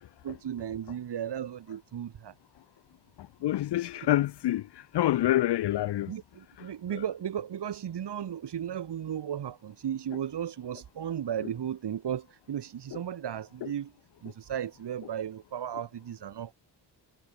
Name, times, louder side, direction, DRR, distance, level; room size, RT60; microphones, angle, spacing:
voice 1, 0.2-2.3 6.1-13.9 14.2-16.5, right 9 dB, 70° right, 6.9 m, -35 dB
voice 2, 3.4-6.1 6.6-6.7 6.9-7.0, left 14 dB, 70° left, 0.8 m, -27 dB
cardioid pair, 95°, 42 cm